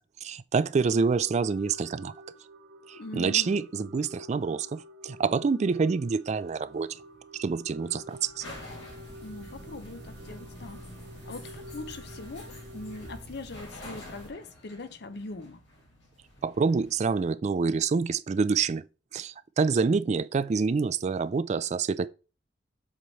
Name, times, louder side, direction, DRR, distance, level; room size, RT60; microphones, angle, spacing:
voice 1, 0.2-2.1 2.9-7.0 7.3-8.4 16.4-18.8 19.1-22.1, right 5 dB, 40° right, 0.3 m, -27 dB
sound 1, 0.8-13.2, equal, 85° right, 0.6 m, -49 dB
voice 2, 2.9-3.7 9.2-10.9 11.3-15.6, left 2 dB, 60° left, 0.7 m, -41 dB
sound 2, 6.5-17.1, left 1 dB, 85° left, 3.9 m, -49 dB
sound 3, 8.5-14.3, equal, 60° right, 1.3 m, -48 dB
7.6 x 3.2 x 4.1 m
head